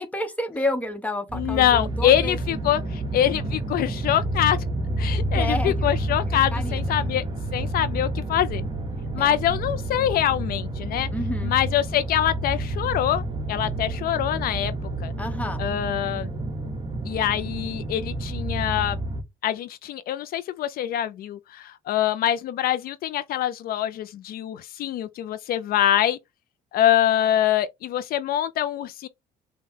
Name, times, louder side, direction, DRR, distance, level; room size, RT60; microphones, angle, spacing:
voice 1, 0.0-2.4 5.3-5.9 6.3-7.1 9.2-9.3 11.1-11.5 15.2-15.6, left 1 dB, 10° left, 1.0 m, -30 dB
voice 2, 1.3-4.6 5.0-7.2 7.5-8.6 9.1-11.1 11.4-14.7 15.0-15.1 15.6-16.3 17.1-19.0 19.4-26.2 26.7-29.1, left 11 dB, 60° left, 0.4 m, -24 dB
sound 1, 1.3-19.2, right 1 dB, 25° right, 1.3 m, -29 dB
5.4 x 2.2 x 3.6 m
cardioid pair, 110°, 17 cm